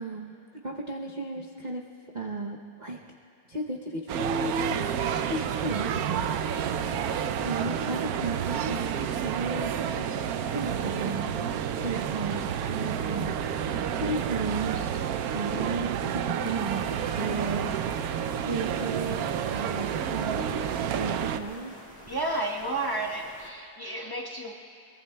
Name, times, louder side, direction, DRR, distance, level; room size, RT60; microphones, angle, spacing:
voice 1, 0.0-1.8 2.1-3.0 3.5-6.4 7.4-10.2 10.4-11.3 11.8-13.3 13.9-16.9 17.1-18.2 18.4-19.2 19.5-20.5 20.9-21.7, right 3 dB, 55° right, -1 dB, 0.5 m, -34 dB
sound 1, 4.1-21.4, right 8 dB, 70° right, 0.9 m, -30 dB
sound 2, 5.0-13.0, left 4 dB, 65° left, 2.1 m, -51 dB
sound 3, 16.5-23.5, equal, 10° right, 2.1 m, -49 dB
voice 2, 22.1-24.5, right 2 dB, 15° left, -3 dB, 0.8 m, -31 dB
23.0 x 22.0 x 2.3 m, 2.4 s
omnidirectional pair, 1.9 m